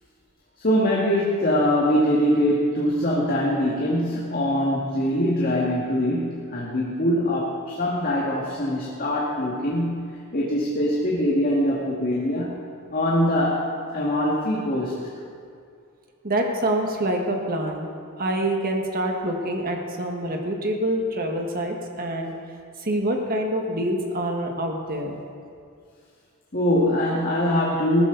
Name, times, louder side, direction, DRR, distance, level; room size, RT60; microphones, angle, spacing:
voice 1, 0.6-12.6 12.9-15.0 26.5-28.1, equal, 40° left, -5 dB, 2.1 m, -23 dB
voice 2, 16.2-17.9 18.2-22.3 22.8-25.2, right 1 dB, 45° right, 2 dB, 1.6 m, -26 dB
19.5 x 14.0 x 4.0 m, 2.3 s
head